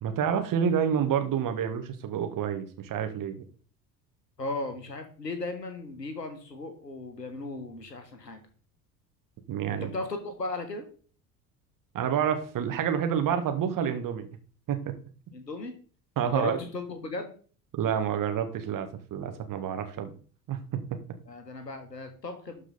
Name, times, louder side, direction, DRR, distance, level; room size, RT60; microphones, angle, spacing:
voice 1, 0.0-3.4 9.5-9.9 11.9-14.3 14.7-14.9 16.2-16.6 17.7-20.1 20.5-21.0, right 8 dB, 40° right, 8 dB, 1.8 m, -28 dB
voice 2, 4.4-8.4 9.7-10.9 15.3-15.7 16.2-17.3 21.3-22.6, left 2 dB, 90° left, 7 dB, 1.5 m, -36 dB
12.0 x 4.9 x 4.2 m, 0.40 s
figure-of-eight pair, 65°, 48 cm